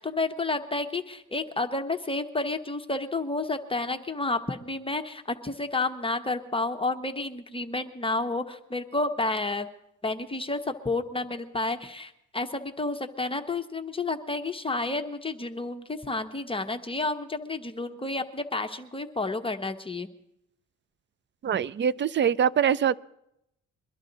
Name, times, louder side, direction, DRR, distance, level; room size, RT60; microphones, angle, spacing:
voice 1, 0.0-9.7 10.0-20.1, left 2 dB, 20° left, 6 dB, 0.9 m, -30 dB
voice 2, 21.4-22.9, right 8 dB, 40° right, 18 dB, 0.5 m, -23 dB
22.5 x 11.5 x 4.0 m, 0.80 s
cardioid pair, 90°, 30 cm